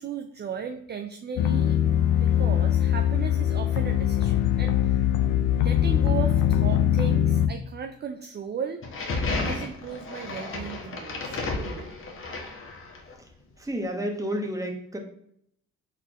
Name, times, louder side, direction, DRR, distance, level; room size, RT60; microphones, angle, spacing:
voice 1, 0.0-1.8 2.2-5.1 5.6-8.8 9.4-11.9, right 6 dB, 35° right, 5 dB, 0.5 m, -36 dB
sound 1, 1.4-7.5, left 10 dB, 85° left, 0.5 m, -22 dB
sound 2, 8.8-13.1, left 3 dB, 45° left, 1.3 m, -32 dB
voice 2, 13.6-15.0, equal, 10° right, 2 dB, 1.2 m, -30 dB
4.1 x 4.1 x 3.0 m, 0.69 s
cardioid pair, 90°, 30 cm